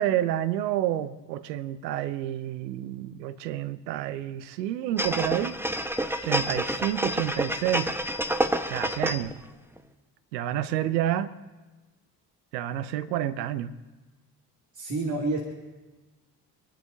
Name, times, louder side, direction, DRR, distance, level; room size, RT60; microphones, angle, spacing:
voice 1, 0.0-5.6 6.2-8.0 8.7-9.3 10.3-11.3 12.5-13.7, right 12 dB, 85° right, 0.8 m, -29 dB
sound 1, 5.0-9.4 9.8-9.9, equal, 5° right, 1.2 m, -28 dB
voice 2, 14.7-15.4, right 2 dB, 35° right, 2.8 m, -29 dB
28.0 x 11.5 x 2.8 m
hypercardioid pair, 50°, 49 cm